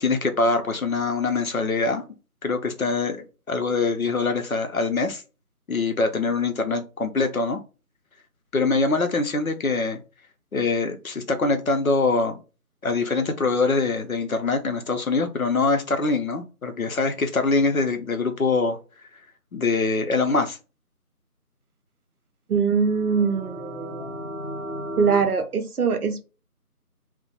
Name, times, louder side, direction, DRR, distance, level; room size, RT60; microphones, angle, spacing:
voice 1, 0.0-2.0 2.4-5.2 5.7-7.6 8.5-10.0 10.5-12.4 12.8-18.8 19.5-20.6, left 3 dB, 65° left, 0.6 m, -23 dB
voice 2, 22.5-24.1 25.0-26.2, right 5 dB, 70° right, 0.6 m, -23 dB
sound 1, 22.7-25.2, equal, 45° left, 1.0 m, -35 dB
2.8 x 2.1 x 2.4 m
figure-of-eight pair, 175°, 46 cm